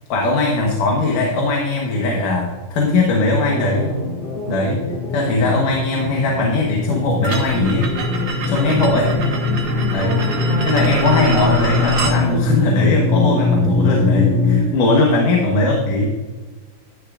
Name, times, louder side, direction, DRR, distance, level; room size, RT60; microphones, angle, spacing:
voice 1, 0.1-4.0 4.5-4.8 5.1-7.9 8.5-9.2 9.9-10.3 10.7-16.1, left 2 dB, 75° left, -1 dB, 2.7 m, -19 dB
sound 1, 3.5-11.2, left 1 dB, 50° left, 2.9 m, -29 dB
sound 2, 4.8-14.6, left 3 dB, ahead, 2.5 m, -21 dB
sound 3, 7.2-12.2, right 3 dB, 75° right, 0.9 m, -27 dB
12.5 x 10.0 x 2.5 m, 1.3 s
omnidirectional pair, 3.8 m